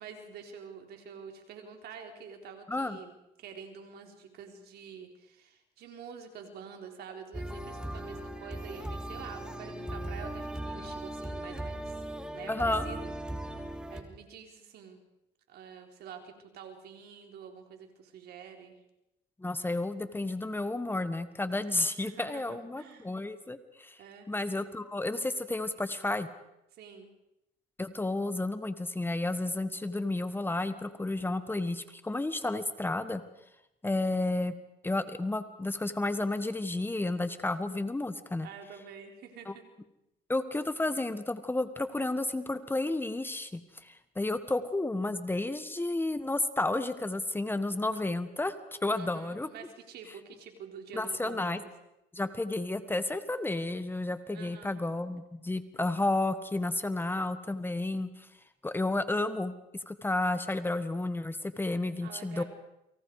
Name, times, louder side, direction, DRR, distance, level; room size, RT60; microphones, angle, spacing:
voice 1, 0.0-12.0 12.3-13.1 13.9-15.0 15.5-18.8 22.0-23.1 24.0-24.3 26.7-27.1 38.4-39.6 48.9-51.7 54.3-54.8 62.0-62.4, right 6 dB, 70° right, 3 dB, 4.2 m, -47 dB
sound 1, 7.3-14.0, right 1 dB, 5° right, 2.9 m, -38 dB
voice 2, 12.5-12.9 19.4-24.0 24.3-26.3 27.8-33.2 33.8-34.6 34.8-38.5 39.5-39.6 40.3-48.5 48.8-49.5 50.9-51.6 52.1-58.3 58.6-59.5 59.9-62.4, left 2 dB, 10° left, 11 dB, 1.4 m, -31 dB
29.5 x 24.0 x 4.9 m, 0.88 s
cardioid pair, 110°, 17 cm